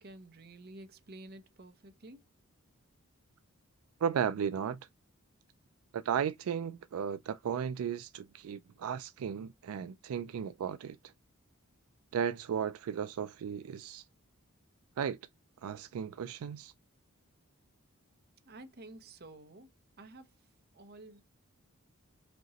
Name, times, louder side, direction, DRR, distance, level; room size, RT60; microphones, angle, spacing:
voice 1, 0.0-2.2 18.4-19.7 20.0-20.5 20.7-21.2, right 2 dB, 45° right, 0.8 m, -51 dB
voice 2, 4.0-4.8 5.9-11.0 12.1-14.0 15.0-15.2 15.6-16.7, right 7 dB, 75° right, 0.3 m, -35 dB
5.1 x 2.9 x 2.8 m
head